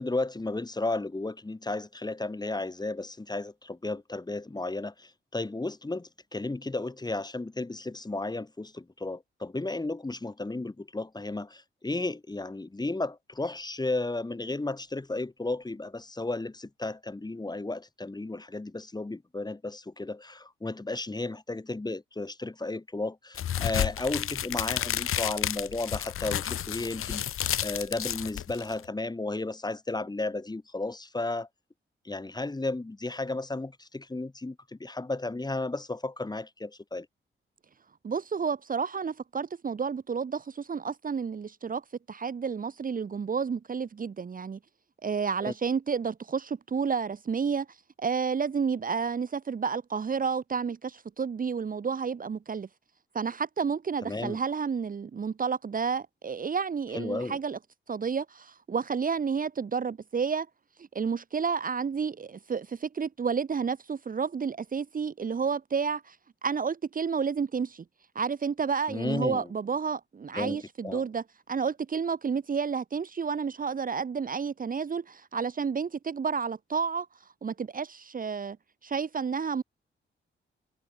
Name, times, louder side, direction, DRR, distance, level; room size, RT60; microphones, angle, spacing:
voice 1, 0.0-31.5 32.0-37.1 45.4-45.5 54.0-54.4 56.9-57.4 68.9-69.5 70.3-71.0, left 2 dB, 20° left, 4.8 m, -34 dB
sound 1, 23.3-28.8, left 10 dB, 85° left, 1.6 m, -31 dB
voice 2, 38.0-44.6 45.0-52.7 53.1-57.6 57.9-60.5 60.8-66.2 66.4-67.8 68.1-77.1 77.4-78.6 78.8-79.6, right 6 dB, 40° right, 1.1 m, -31 dB
cardioid pair, 105°, 21 cm